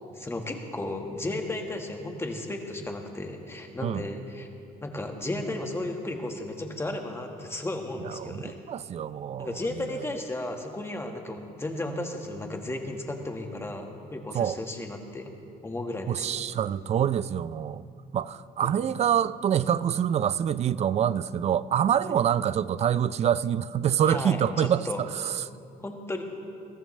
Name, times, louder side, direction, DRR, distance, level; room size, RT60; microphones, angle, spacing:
voice 1, 0.1-4.5 4.8-8.6 9.4-15.3 15.6-16.3 18.6-18.8 22.0-22.1 24.1-25.0 25.8-26.2, left 2 dB, 15° left, 1.6 m, -34 dB
voice 2, 8.7-9.5 14.3-14.6 16.1-17.8 18.1-25.4, right 9 dB, 40° right, 0.4 m, -26 dB
22.0 x 14.0 x 3.3 m
cardioid pair, 110°, 17 cm